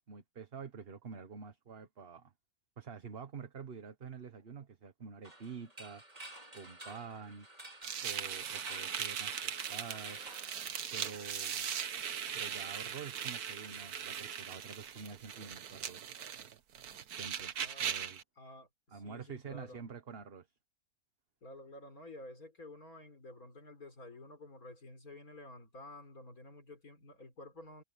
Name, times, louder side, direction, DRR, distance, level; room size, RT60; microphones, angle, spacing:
voice 1, 0.1-2.3 2.8-6.0 6.5-7.5 8.0-10.2 10.9-11.7 12.3-16.0 17.2-17.5 17.8-18.2 18.9-20.5, right 6 dB, 40° right, 1.4 m, -47 dB
sound 1, 5.2-11.2, right 1 dB, 25° right, 3.6 m, -51 dB
sound 2, 7.8-18.2, right 8 dB, 80° right, 1.6 m, -39 dB
voice 2, 17.6-18.0 18.4-19.8 21.4-27.8, left 2 dB, 70° left, 4.4 m, -51 dB
omnidirectional pair, 1.6 m